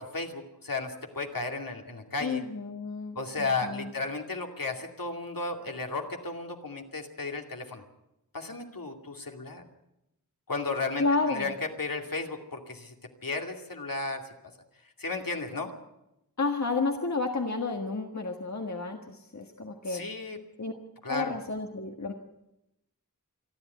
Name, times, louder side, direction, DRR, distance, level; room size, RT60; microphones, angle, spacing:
voice 1, 0.0-2.4 3.2-7.8 8.3-9.6 10.5-12.9 13.2-14.2 15.0-15.7 19.9-20.4 21.0-21.3, left 3 dB, 70° left, 3 dB, 2.5 m, -34 dB
voice 2, 2.2-3.9 11.0-11.5 16.4-20.1 20.6-20.7 21.1-22.1, left 3 dB, 50° left, 3 dB, 1.6 m, -31 dB
27.5 x 11.0 x 9.2 m, 0.89 s
wide cardioid pair, 60°, 35 cm